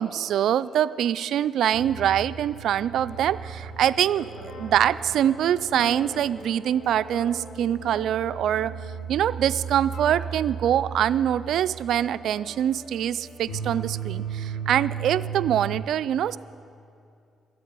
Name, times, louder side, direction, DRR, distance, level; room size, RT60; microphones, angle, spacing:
voice 1, 0.0-8.7 9.1-16.4, right 10 dB, 75° right, 15 dB, 0.3 m, -24 dB
sound 1, 1.7-15.8, right 6 dB, 80° left, 2.2 m, -36 dB
12.5 x 8.4 x 9.6 m, 2.4 s
cardioid pair, 90°, 0 cm